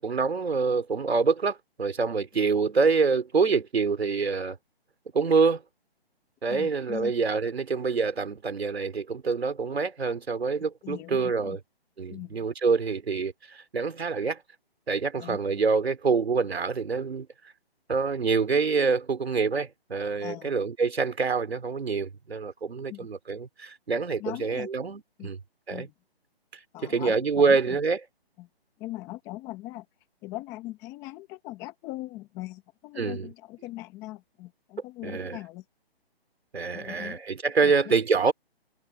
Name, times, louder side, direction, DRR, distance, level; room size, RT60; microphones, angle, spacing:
voice 1, 0.0-4.6 5.1-5.6 6.4-11.6 12.0-14.4 14.9-17.3 17.9-25.4 25.7-25.9 26.8-28.0 33.0-33.3 35.0-35.4 36.5-38.3, right 4 dB, 80° right, 3.4 m, -26 dB
voice 2, 6.5-7.1 10.8-11.6 12.1-12.4 15.2-15.4 20.2-20.5 22.9-23.1 24.2-24.7 25.2-25.3 25.7-25.9 26.7-27.8 28.4-28.5 28.8-29.9 30.2-35.6 36.7-37.2 37.6-37.9, left 17 dB, 10° left, 1.0 m, -40 dB
hypercardioid pair, 160°, 31 cm